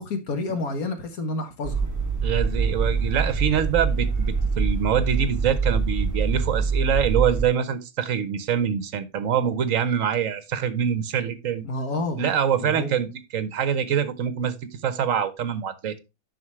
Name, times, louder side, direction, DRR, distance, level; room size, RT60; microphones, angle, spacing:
voice 1, 0.0-1.9 11.6-12.2 12.6-13.0, left 2 dB, 75° left, 1.7 m, -29 dB
sound 1, 1.6-7.4, right 5 dB, 10° right, 2.2 m, -24 dB
voice 2, 2.2-11.7 12.2-14.5 14.8-16.0, right 8 dB, 65° right, 1.2 m, -25 dB
9.2 x 6.1 x 3.1 m
omnidirectional pair, 1.6 m